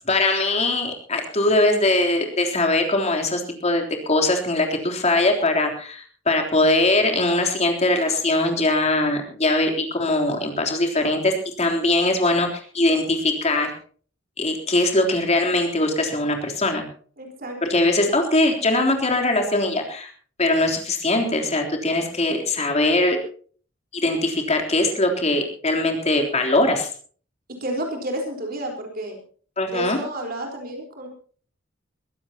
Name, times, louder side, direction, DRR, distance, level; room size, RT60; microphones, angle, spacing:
voice 1, 0.1-13.7 14.4-16.9 17.6-20.1 20.4-23.2 24.0-26.9 29.6-30.0, left 2 dB, 35° left, 3 dB, 3.5 m, -21 dB
voice 2, 17.2-17.6 27.6-29.2 29.7-31.1, right 1 dB, 50° right, 3 dB, 4.2 m, -30 dB
22.5 x 15.5 x 2.9 m, 0.43 s
head